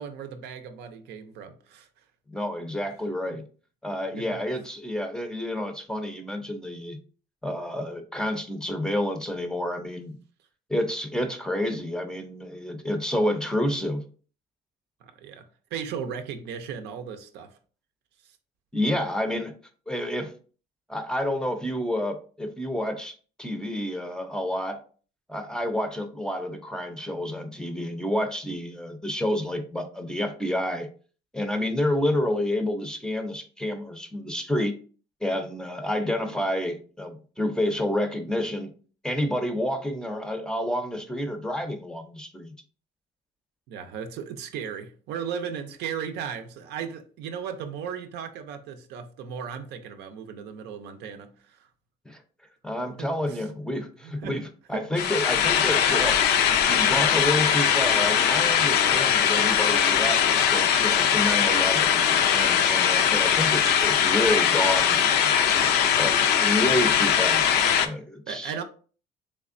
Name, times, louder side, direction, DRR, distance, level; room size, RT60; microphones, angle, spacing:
voice 1, 0.0-1.9 3.3-3.4 4.1-4.3 15.0-17.5 43.7-51.6 53.0-53.4 54.0-54.5 54.7-54.9 65.2-65.4 68.3-68.6, right 7 dB, 80° right, 0.5 m, -36 dB
voice 2, 2.3-3.5 3.8-7.0 7.4-10.2 10.7-14.0 18.7-19.5 19.9-20.3 20.9-24.8 25.3-30.9 31.3-34.7 35.2-38.7 39.0-42.6 52.1-52.2 52.6-56.2 56.7-65.0 66.0-67.4 67.8-68.5, left 1 dB, 5° left, 0.5 m, -29 dB
sound 1, 55.0-67.9, left 8 dB, 75° left, 0.4 m, -21 dB
3.4 x 3.2 x 2.5 m
cardioid pair, 110°, 17 cm